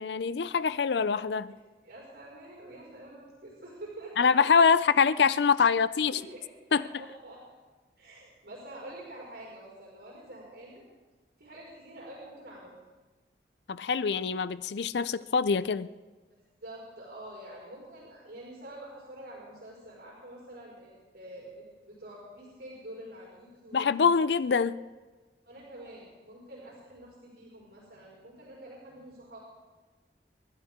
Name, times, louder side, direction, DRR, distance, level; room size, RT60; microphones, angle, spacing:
voice 1, 0.0-1.5 4.2-6.2 6.7-6.9 13.7-15.9 23.7-24.8, left 5 dB, 80° left, 0.5 m, -24 dB
voice 2, 1.8-4.3 6.1-6.4 6.7-7.4 8.0-10.8 11.4-12.7 16.6-23.8 25.4-29.4, right 1 dB, 85° right, 5.2 m, -47 dB
28.0 x 12.0 x 3.7 m
head